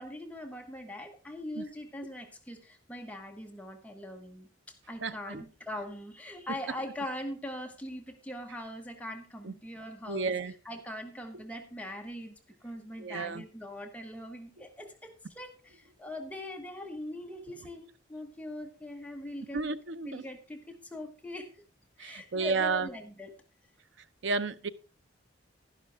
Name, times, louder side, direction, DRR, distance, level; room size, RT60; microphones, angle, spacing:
voice 1, 0.0-4.5 4.9-10.3 10.6-19.6 20.1-21.6 22.0-23.4, left 1 dB, 10° left, 1.1 m, -41 dB
voice 2, 5.0-5.4 9.4-9.5 10.1-10.5 13.0-13.4 19.5-20.2 22.0-22.9 24.2-24.7, right 4 dB, 75° right, 0.6 m, -32 dB
11.5 x 11.0 x 3.4 m
head